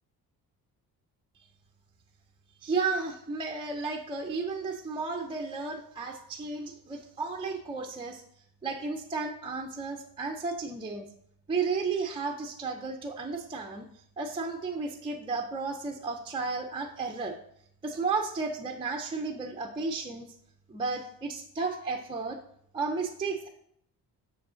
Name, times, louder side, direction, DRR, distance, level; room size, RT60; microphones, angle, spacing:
voice 1, 2.6-8.2 8.6-11.1 11.5-13.9 14.2-17.3 17.8-20.3 20.7-22.4 22.7-23.5, right 4 dB, 15° right, 3 dB, 0.5 m, -33 dB
7.1 x 6.3 x 3.7 m, 0.69 s
cardioid pair, 165°, 38 cm